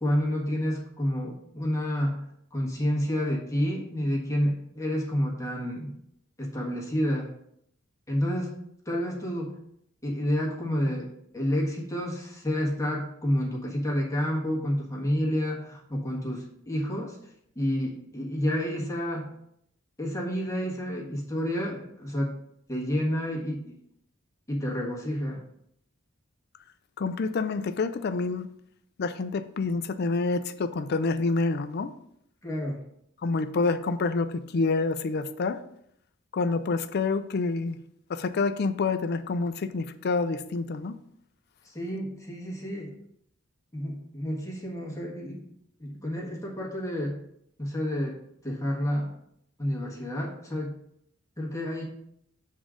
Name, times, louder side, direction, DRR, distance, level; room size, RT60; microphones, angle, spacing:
voice 1, 0.0-2.2 2.5-5.9 6.4-7.3 8.1-8.5 8.8-9.6 10.0-11.1 11.3-17.2 17.5-19.3 20.0-22.3 22.7-23.6 24.5-25.4 32.4-32.8 41.6-42.9 43.7-45.4 45.8-47.2 47.6-48.2 48.4-49.1 49.6-50.7 51.4-51.8, equal, 15° left, -3 dB, 1.4 m, -29 dB
voice 2, 27.0-28.5 29.0-31.9 33.2-35.6 36.3-37.8 38.1-41.0, left 3 dB, 50° left, 11 dB, 0.4 m, -27 dB
7.2 x 3.7 x 5.0 m, 0.73 s
head